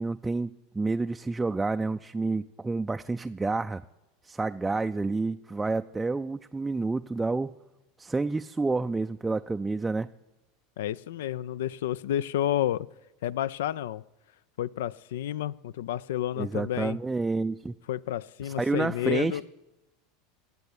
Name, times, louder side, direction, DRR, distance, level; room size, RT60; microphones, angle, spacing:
voice 1, 0.0-3.8 4.2-7.5 8.0-10.1 16.4-17.7 18.4-19.4, right 3 dB, 10° right, 8 dB, 0.4 m, -29 dB
voice 2, 10.8-12.9 13.2-14.0 14.6-17.0 17.9-19.4, left 11 dB, 80° left, 20 dB, 0.4 m, -30 dB
17.0 x 6.9 x 8.1 m, 1.0 s
hypercardioid pair, 105°, 0 cm